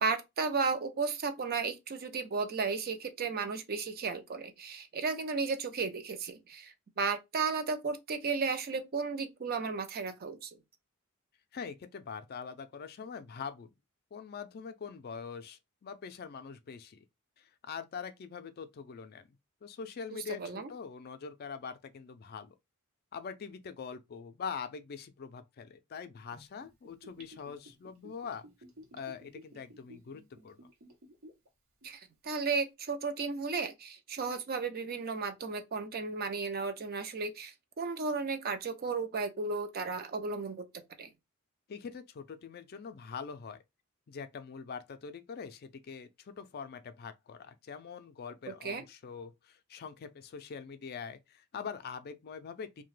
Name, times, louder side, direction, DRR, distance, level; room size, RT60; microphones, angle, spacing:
voice 1, 0.0-10.5 20.1-20.7 31.8-40.6 41.0-41.1 48.6-48.8, right 4 dB, 45° right, 0.5 m, -34 dB
voice 2, 11.5-13.7 14.1-17.0 17.4-19.3 19.6-22.5 23.1-28.5 28.9-30.6 41.7-43.6 44.1-52.8, left 6 dB, 45° left, 0.4 m, -43 dB
Gurgling / Bathtub (filling or washing), 26.3-31.5 31.8-31.9, equal, 70° right, 0.8 m, -54 dB
2.8 x 2.2 x 3.1 m
head